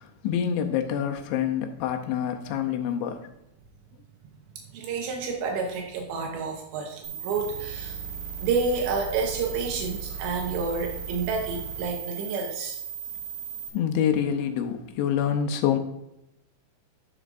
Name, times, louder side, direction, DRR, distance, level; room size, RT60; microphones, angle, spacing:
voice 1, 0.0-3.3 13.7-15.8, left 9 dB, 85° left, 3.1 m, -26 dB
voice 2, 4.7-8.0 8.4-12.8, right 4 dB, 80° right, 3.1 m, -29 dB
sound 1, 7.0-13.7, right 7 dB, 55° right, 2.0 m, -36 dB
12.0 x 6.1 x 2.5 m
omnidirectional pair, 5.2 m